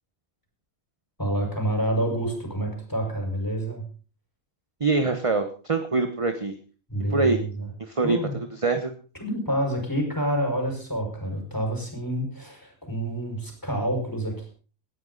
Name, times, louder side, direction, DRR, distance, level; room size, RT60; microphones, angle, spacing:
voice 1, 1.2-3.8 6.9-7.7 8.0-8.4 9.2-14.5, right 1 dB, 15° left, 2 dB, 5.7 m, -28 dB
voice 2, 4.8-6.5 7.1-7.4 7.9-8.9, right 3 dB, 25° right, 7 dB, 1.2 m, -24 dB
19.0 x 13.0 x 4.1 m, 0.37 s
omnidirectional pair, 1.4 m